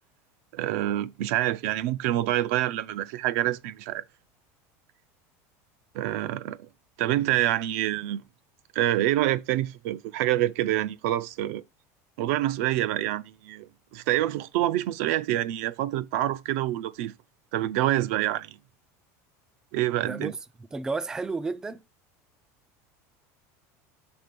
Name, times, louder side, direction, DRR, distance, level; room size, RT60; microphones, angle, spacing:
voice 1, 0.5-4.0 5.9-6.7 7.0-8.2 8.7-11.6 12.2-17.1 17.5-18.6 19.7-20.3, right 14 dB, 70° right, 0.5 m, -27 dB
voice 2, 20.0-20.4 20.7-21.8, right 3 dB, 10° right, 0.3 m, -31 dB
6.1 x 3.3 x 5.2 m
cardioid pair, 155°, 8 cm